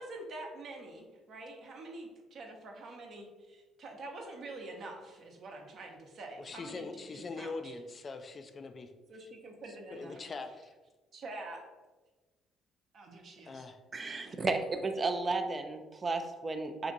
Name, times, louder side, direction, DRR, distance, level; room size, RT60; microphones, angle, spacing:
voice 1, 0.0-7.7 9.1-10.2 11.1-11.6 12.9-13.6, right 2 dB, 60° right, 1 dB, 0.8 m, -46 dB
voice 2, 6.4-8.9 9.7-10.7 13.5-13.8, left 3 dB, 40° left, 6 dB, 0.4 m, -42 dB
voice 3, 13.9-16.9, right 3 dB, 35° right, 7 dB, 0.4 m, -33 dB
2.8 x 2.5 x 3.8 m, 1.2 s
hypercardioid pair, 55°, 0 cm